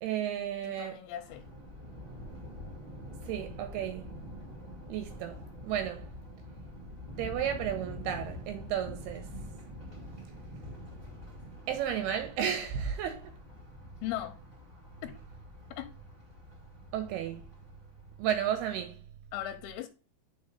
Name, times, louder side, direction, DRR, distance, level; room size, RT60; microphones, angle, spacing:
voice 1, 0.0-1.0 3.3-4.1 4.9-6.1 7.2-9.3 11.7-13.3 16.9-17.4 18.2-19.0, right 9 dB, 80° right, 2.6 m, -33 dB
voice 2, 0.6-1.5 14.0-14.4 15.0-15.2 15.8-15.9 19.3-19.9, left 13 dB, 80° left, 2.4 m, -38 dB
Thunder, 1.1-18.5, left 1 dB, 15° right, 1.9 m, -46 dB
5.3 x 4.4 x 5.1 m
omnidirectional pair, 4.8 m